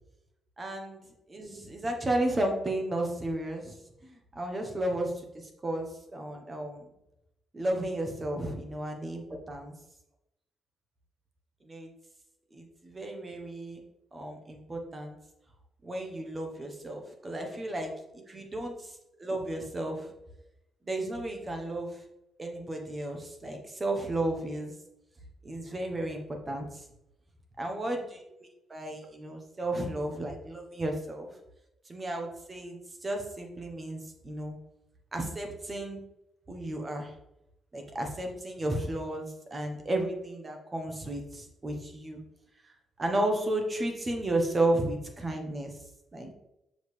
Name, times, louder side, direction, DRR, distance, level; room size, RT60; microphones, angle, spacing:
voice 1, 0.6-1.0 1.3-3.8 4.0-6.9 7.5-9.7 11.6-11.9 12.5-13.8 14.1-15.2 15.8-20.1 20.8-22.0 22.4-24.7 25.4-26.9 27.6-28.2 28.7-31.3 31.9-34.6 35.1-36.0 36.5-37.1 37.7-42.2 42.7-45.7 46.1-46.3, right 1 dB, 25° right, 3 dB, 1.1 m, -33 dB
6.4 x 5.2 x 3.4 m, 0.88 s
cardioid pair, 130°, 0 cm